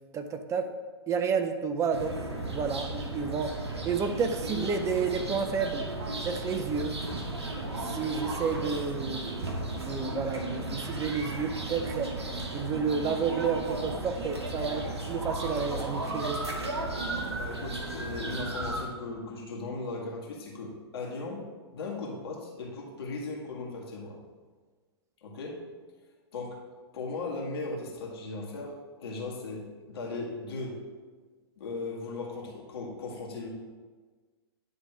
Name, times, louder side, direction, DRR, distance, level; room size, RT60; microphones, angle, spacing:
voice 1, 0.1-0.7 1.1-3.6 3.8-5.9 6.2-7.0 7.8-12.2 12.5-16.5, right 5 dB, 20° right, 8 dB, 0.6 m, -31 dB
sound 1, 1.9-18.8, right 2 dB, 80° right, 1.1 m, -35 dB
voice 2, 17.3-21.4 21.7-24.2 25.2-25.6 26.3-26.6 26.9-30.8 31.6-33.5, left 3 dB, 65° left, -2 dB, 1.8 m, -37 dB
9.9 x 3.4 x 4.5 m, 1.4 s
figure-of-eight pair, 105°, 14 cm